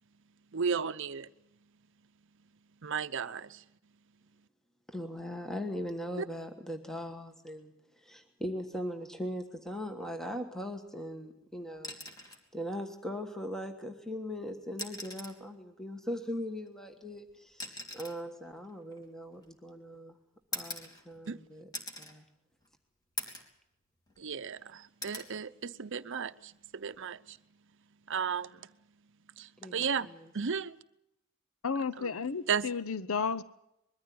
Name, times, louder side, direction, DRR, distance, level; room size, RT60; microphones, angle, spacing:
voice 1, 0.5-1.3 2.8-3.6 6.2-6.3 21.3-21.4 24.2-27.4 28.1-28.7 29.4-30.1 30.3-30.7 32.0-32.1 32.5-32.7, right 6 dB, 65° right, 12 dB, 0.7 m, -34 dB
voice 2, 4.9-12.0 12.2-20.2 20.5-21.7 22.0-22.2 29.6-30.3, equal, ahead, 5 dB, 1.4 m, -40 dB
sound 1, 11.8-12.5 13.9-14.0 14.7-15.5 16.6-19.7 20.5-21.4 21.7-22.2 22.6-22.7 23.2-23.6 24.0-24.6 25.0-25.3 26.8-27.0, left 1 dB, 20° left, 3.2 m, -42 dB
voice 3, 31.6-33.4, left 5 dB, 80° left, 15 dB, 0.7 m, -32 dB
22.0 x 14.0 x 9.4 m, 0.82 s
head